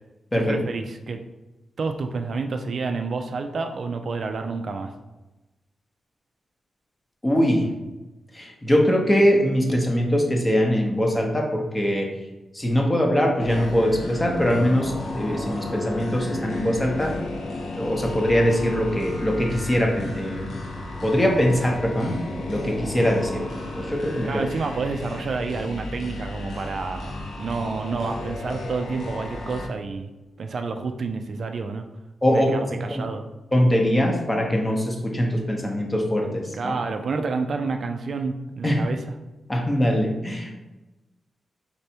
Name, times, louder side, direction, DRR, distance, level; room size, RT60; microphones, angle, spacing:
voice 1, 0.3-1.2 1.8-4.9 24.2-30.1 30.4-31.9 32.3-33.3 36.5-39.0, right 4 dB, 55° right, 6 dB, 0.3 m, -29 dB
voice 2, 7.2-7.7 8.3-12.1 12.5-17.2 17.8-20.6 21.0-22.2 22.5-23.4 23.7-24.5 32.2-33.0 33.5-36.7 38.6-38.8 39.5-40.5, equal, 15° left, 1 dB, 0.7 m, -22 dB
sound 1, 13.4-29.7, left 2 dB, 85° left, 0.7 m, -33 dB
4.3 x 3.3 x 2.8 m, 1.1 s
wide cardioid pair, 120°, 0 cm